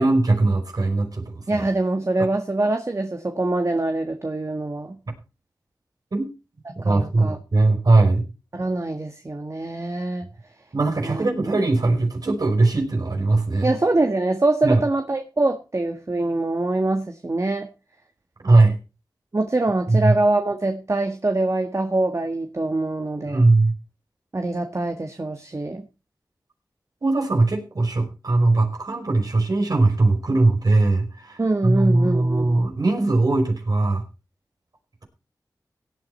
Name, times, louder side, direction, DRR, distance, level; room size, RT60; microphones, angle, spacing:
voice 1, 0.0-1.6 6.1-6.3 6.8-8.3 10.7-13.7 14.6-14.8 18.4-18.7 19.9-20.1 23.2-23.7 27.0-34.0, right 2 dB, 60° right, 3 dB, 5.3 m, -20 dB
voice 2, 1.5-5.0 6.8-7.4 8.5-10.3 11.0-11.2 13.6-17.7 19.3-23.4 24.3-25.8 31.4-32.5, right 2 dB, 45° right, 6 dB, 1.6 m, -24 dB
17.0 x 9.1 x 4.3 m, 0.31 s
cardioid pair, 40°, 7 cm